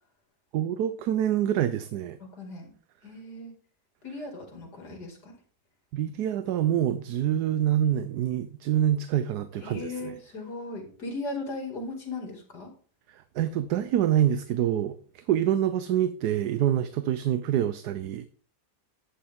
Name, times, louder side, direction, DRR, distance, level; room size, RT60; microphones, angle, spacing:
voice 1, 0.5-2.2 5.9-10.1 13.1-18.3, right 10 dB, 75° right, 1.2 m, -26 dB
voice 2, 2.2-2.7 3.0-3.6 4.0-5.4 9.6-12.7, left 2 dB, 75° left, 3.1 m, -37 dB
11.5 x 8.7 x 3.6 m
omnidirectional pair, 1.8 m